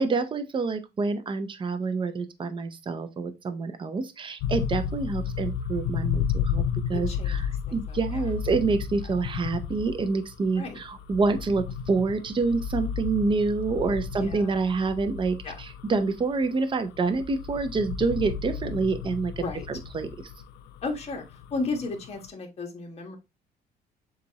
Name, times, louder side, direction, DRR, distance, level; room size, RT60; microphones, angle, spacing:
voice 1, 0.0-6.6 6.9-7.5 7.7-20.1, right 4 dB, 30° right, 0.7 m, -27 dB
sound 1, 4.4-22.3, left 8 dB, 90° left, 0.5 m, -33 dB
voice 2, 6.9-7.4 7.7-8.3 10.5-10.8 14.1-14.6 15.4-15.5 19.4-19.6 20.8-23.2, left 3 dB, 40° left, 1.4 m, -34 dB
6.9 x 2.5 x 2.9 m
cardioid pair, 110°, 17 cm